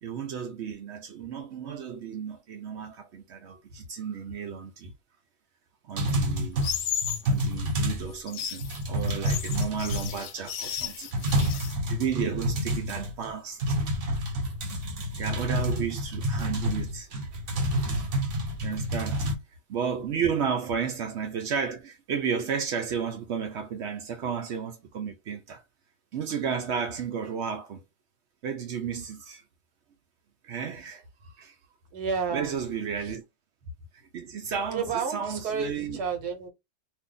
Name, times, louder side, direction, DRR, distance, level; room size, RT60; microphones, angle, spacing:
voice 1, 0.0-4.9 5.8-6.7 7.2-13.8 15.2-17.1 18.6-19.2 19.7-25.6 26.1-27.8 28.4-29.4 30.4-31.5 32.3-33.2 33.9-36.0, right 7 dB, 90° right, 0.6 m, -33 dB
sound 1, 5.9-8.1 8.4-10.4 10.8-10.9 11.1-13.3 13.6-19.3, equal, 50° right, 1.1 m, -29 dB
sound 2, 6.6-7.3 8.1-11.7, left 9 dB, 70° left, 1.1 m, -34 dB
voice 2, 31.9-32.6 34.7-36.5, right 6 dB, 70° right, 1.4 m, -31 dB
2.7 x 2.6 x 3.7 m
omnidirectional pair, 1.8 m